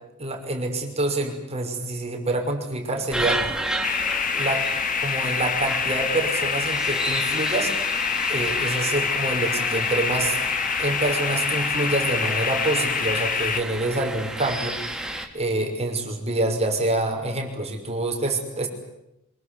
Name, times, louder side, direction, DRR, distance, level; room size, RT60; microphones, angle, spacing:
voice 1, 0.2-3.4 4.3-4.6 5.0-7.8 8.3-10.4 10.8-15.0 15.3-18.7, right 2 dB, 30° right, 4 dB, 6.0 m, -26 dB
sound 1, 3.1-15.3, right 1 dB, 5° right, 3.2 m, -32 dB
sound 2, 3.8-13.6, left 6 dB, 40° left, 1.8 m, -26 dB
25.0 x 23.0 x 9.7 m, 0.86 s
head